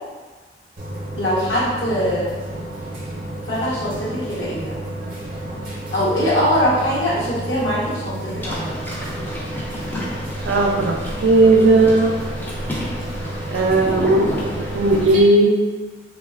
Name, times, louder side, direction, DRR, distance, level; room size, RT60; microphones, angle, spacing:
sound 1, 0.8-15.2, right 1 dB, 50° right, 0.6 m, -31 dB
voice 1, 1.1-2.3 3.5-4.8 5.9-8.7, equal, 70° left, -8 dB, 1.0 m, -22 dB
sound 2, 8.4-15.1, equal, 10° left, 0.3 m, -30 dB
voice 2, 10.5-12.1 13.5-14.5 14.7-15.5, right 2 dB, 90° right, 1 dB, 0.4 m, -16 dB
3.1 x 2.2 x 2.3 m, 1.4 s
head